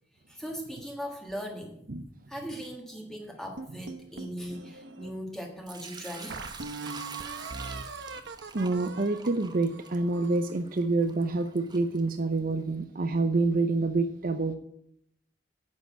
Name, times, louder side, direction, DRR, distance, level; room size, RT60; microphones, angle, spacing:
voice 1, 0.3-1.8 2.3-6.4, equal, 5° left, 1.5 m, -39 dB
sound 1, 3.6-5.1 5.7-5.8 6.3-10.5, right 4 dB, 90° right, 0.9 m, -41 dB
Sink (filling or washing) / Liquid, 5.7-12.6, right 5 dB, 25° right, 0.9 m, -47 dB
voice 2, 8.5-14.6, right 3 dB, 55° right, 0.7 m, -27 dB
9.6 x 6.6 x 8.2 m
head